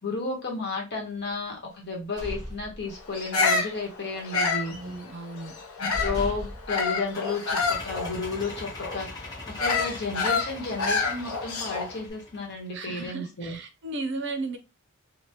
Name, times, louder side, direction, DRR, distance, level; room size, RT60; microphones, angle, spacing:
voice 1, 0.0-4.8 5.8-9.2 9.5-13.6, left 3 dB, 50° left, 1.1 m, -32 dB
sound 1, 1.8-3.4 3.7-4.0 4.3-5.1 5.6-5.7 5.9-7.8, equal, 20° right, 1.3 m, -37 dB
Bird vocalization bird call bird song, 3.1-6.2 6.7-12.0, left 4 dB, 90° left, 0.7 m, -28 dB
voice 2, 4.6-5.6 12.7-14.6, right 2 dB, 55° right, 0.5 m, -35 dB
sound 2, 7.1-12.7, left 2 dB, 15° left, 1.1 m, -42 dB
3.4 x 2.3 x 2.9 m
head